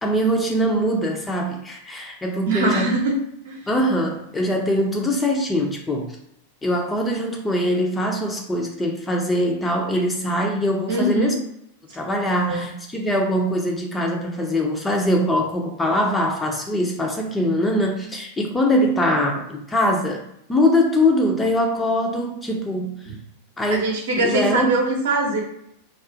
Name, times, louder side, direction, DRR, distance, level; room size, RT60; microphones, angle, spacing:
voice 1, 0.0-3.0 3.7-6.2 6.6-11.4 11.9-20.2 20.5-23.0 23.6-23.8 24.2-24.7, equal, 10° left, 1 dB, 0.4 m, -22 dB
voice 2, 2.5-3.1 3.4-3.6 10.9-11.4 12.4-12.7 23.0-23.2 23.7-25.4, right 2 dB, 60° right, 0 dB, 0.7 m, -22 dB
2.3 x 2.3 x 2.5 m, 0.74 s
figure-of-eight pair, 90°, 0 cm